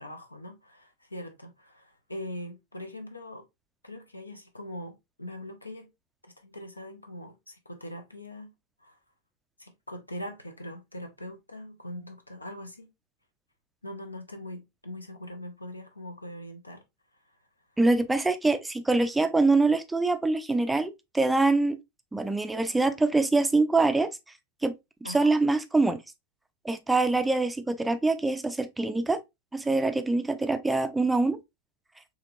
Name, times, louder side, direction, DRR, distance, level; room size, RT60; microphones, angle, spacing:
voice 1, 0.0-3.4 3.8-5.9 6.4-8.5 8.8-8.9 9.6-12.9 13.8-16.8 25.0-25.4, left 1 dB, 85° left, 0.6 m, -41 dB
voice 2, 17.8-21.8 22.1-24.1 24.6-24.7 25.0-26.0 26.6-29.2 29.5-31.4, right 3 dB, 5° right, 0.4 m, -24 dB
4.4 x 2.9 x 2.3 m
figure-of-eight pair, 90°, 0 cm